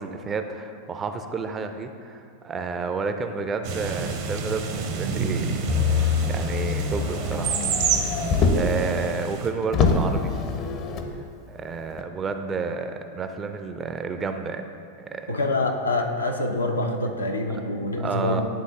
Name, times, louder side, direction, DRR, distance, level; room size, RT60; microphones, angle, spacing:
voice 1, 0.0-7.6 8.0-10.3 11.5-14.6 15.0-15.4 18.0-18.5, right 4 dB, 25° right, 7 dB, 0.4 m, -31 dB
sound 1, 3.6-9.5, right 5 dB, 50° right, 0.8 m, -29 dB
Motor vehicle (road), 5.7-8.8 9.3-9.4 9.7-11.1 12.0-12.1, left 5 dB, 40° left, 0.6 m, -24 dB
voice 2, 15.3-18.5, left 2 dB, 85° left, 2 dB, 0.6 m, -26 dB
10.5 x 3.8 x 3.6 m, 2.4 s
figure-of-eight pair, 90°, 0 cm